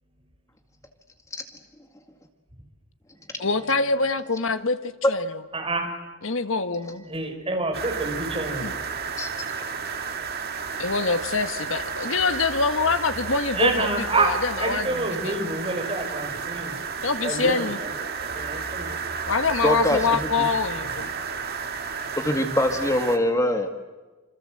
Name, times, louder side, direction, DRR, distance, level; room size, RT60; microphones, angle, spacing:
voice 1, 3.4-5.4 6.2-7.0 8.6-8.7 10.8-15.4 17.0-17.8 19.3-21.1, left 4 dB, 70° left, 10 dB, 1.5 m, -25 dB
voice 2, 5.5-5.9 7.1-8.7 13.6-16.8 17.2-17.7 18.2-19.0, right 2 dB, 25° right, 3 dB, 5.7 m, -27 dB
sound 1, 7.7-23.2, right 5 dB, 45° right, 2.4 m, -32 dB
voice 3, 19.6-20.5 22.2-23.7, left 1 dB, 15° left, 5 dB, 2.0 m, -23 dB
27.5 x 27.0 x 7.8 m, 1.2 s
head